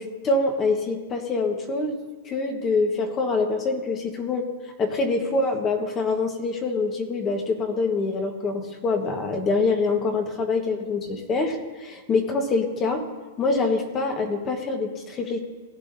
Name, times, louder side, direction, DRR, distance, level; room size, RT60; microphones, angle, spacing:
voice 1, 0.0-2.0 2.2-4.5 4.8-13.0 13.4-15.4, left 3 dB, 25° left, 4 dB, 1.4 m, -25 dB
17.5 x 9.5 x 2.8 m, 1.3 s
hypercardioid pair, 135°, 0 cm